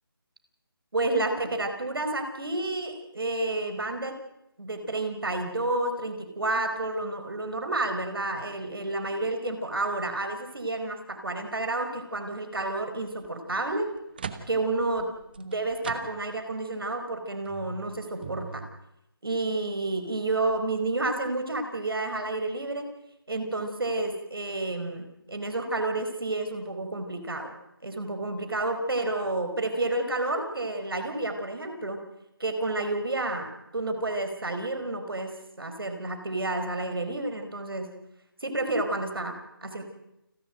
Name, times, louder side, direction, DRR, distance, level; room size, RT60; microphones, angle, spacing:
voice 1, 0.9-4.1 4.6-13.9 14.5-15.1 15.4-18.6 19.2-22.9 23.3-27.6 27.8-32.0 32.4-37.9 38.4-39.8, right 2 dB, 70° right, 7 dB, 4.6 m, -30 dB
sound 1, 13.1-13.3 13.8-16.5 17.0-17.1 17.4-18.7, right 6 dB, 25° right, 1.1 m, -41 dB
29.0 x 11.5 x 9.2 m, 0.89 s
figure-of-eight pair, 165°, 12 cm